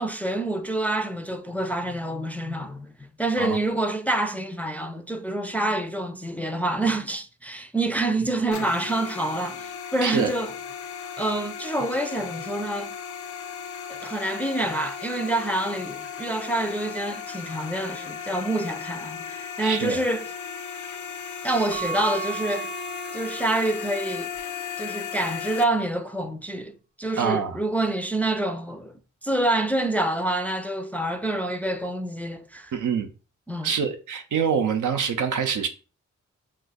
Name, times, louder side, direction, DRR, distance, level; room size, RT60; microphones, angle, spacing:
voice 1, 0.0-2.9 3.2-10.5 11.2-12.9 13.9-20.3 21.4-22.7 23.1-24.3 24.8-28.9 29.2-32.7 33.5-33.7, right 2 dB, 5° left, 0.4 m, -27 dB
sound 1, 8.5-25.6, left 7 dB, 70° left, 0.4 m, -36 dB
voice 2, 10.0-10.3 19.6-20.0 27.2-27.6 32.7-33.1 33.6-35.7, right 7 dB, 70° right, 0.6 m, -25 dB
Keyboard (musical) / Bell, 21.7-24.1, right 8 dB, 25° right, 0.7 m, -36 dB
2.4 x 2.4 x 4.0 m
cardioid pair, 60°, 31 cm